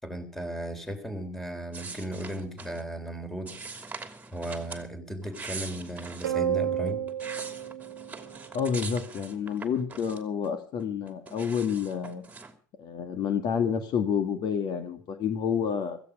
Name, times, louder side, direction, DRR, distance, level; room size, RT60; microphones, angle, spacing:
voice 1, 0.0-4.0 4.3-7.0, right 1 dB, 5° left, 8 dB, 3.6 m, -36 dB
sound 1, 1.7-2.8 3.5-4.9 5.2-6.4 6.9-10.5 10.8-12.5, right 4 dB, 15° right, 2.8 m, -42 dB
sound 2, 6.2-8.8, right 10 dB, 80° right, 1.4 m, -31 dB
voice 2, 8.5-12.2 12.8-16.0, left 7 dB, 45° left, 8 dB, 2.0 m, -29 dB
16.0 x 15.5 x 4.9 m, 0.42 s
hypercardioid pair, 80°, 10 cm